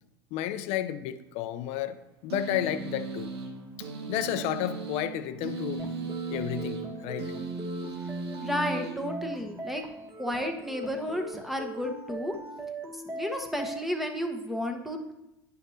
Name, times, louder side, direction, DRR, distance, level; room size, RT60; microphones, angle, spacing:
voice 1, 0.3-2.0 2.2-3.3 3.8-5.8 6.3-7.3, left 12 dB, 55° left, 10 dB, 0.7 m, -32 dB
sound 1, 2.3-9.7, right 4 dB, 85° right, 1.6 m, -37 dB
sound 2, 5.8-13.8, right 2 dB, 20° right, 1.6 m, -41 dB
voice 2, 8.4-9.8 10.2-12.4 12.9-15.1, left 1 dB, ahead, 4 dB, 1.2 m, -32 dB
11.0 x 6.0 x 2.8 m, 0.92 s
hypercardioid pair, 90°, 13 cm